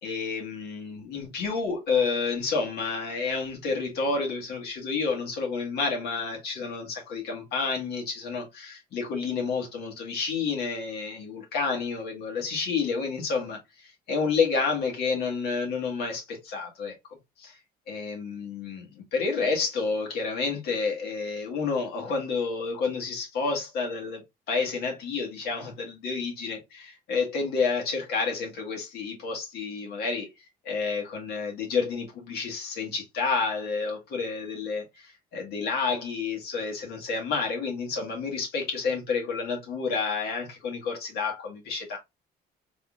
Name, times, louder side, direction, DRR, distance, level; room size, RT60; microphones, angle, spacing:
voice 1, 0.0-16.9 17.4-17.6 17.9-26.6 27.1-30.3 30.6-42.0, left 4 dB, 70° left, 1.6 m, -30 dB
3.7 x 3.2 x 2.4 m
cardioid pair, 110°, 17 cm